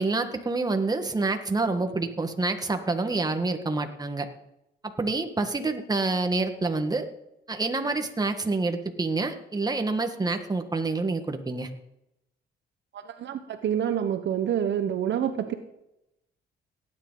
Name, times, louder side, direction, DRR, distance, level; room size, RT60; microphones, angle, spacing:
voice 1, 0.0-4.3 5.0-7.0 7.5-11.7, right 3 dB, 20° right, 6 dB, 1.6 m, -27 dB
voice 2, 12.9-15.5, right 9 dB, 65° right, 8 dB, 1.2 m, -27 dB
18.0 x 9.8 x 4.0 m, 0.85 s
cardioid pair, 90°, 20 cm